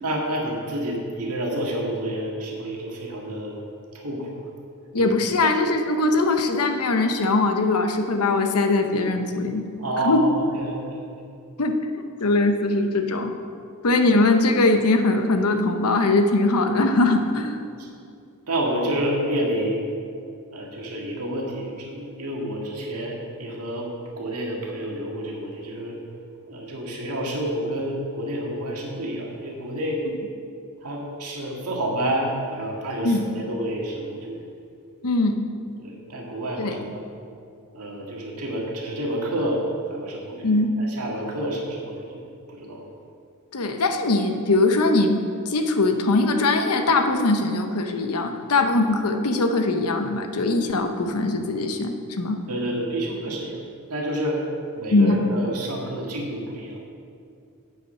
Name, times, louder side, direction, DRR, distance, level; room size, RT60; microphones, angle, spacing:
voice 1, 0.0-3.6 3.9-4.4 5.0-5.1 9.8-11.1 14.1-14.2 17.8-17.9 18.5-19.8 20.5-23.9 24.2-25.9 26.5-30.0 30.8-34.4 35.8-37.1 37.7-39.6 39.9-42.2 42.5-42.8 52.5-53.6 53.9-54.4 54.8-56.8, right 1 dB, 85° right, -1 dB, 1.9 m, -29 dB
voice 2, 4.9-9.7 10.0-10.2 11.6-11.8 12.2-13.3 13.8-17.6 33.0-33.3 35.0-35.4 36.6-36.8 40.4-40.7 43.5-45.2 45.5-52.4 54.9-55.2, left 2 dB, 80° left, 6 dB, 0.9 m, -21 dB
8.3 x 8.3 x 5.6 m, 2.4 s
head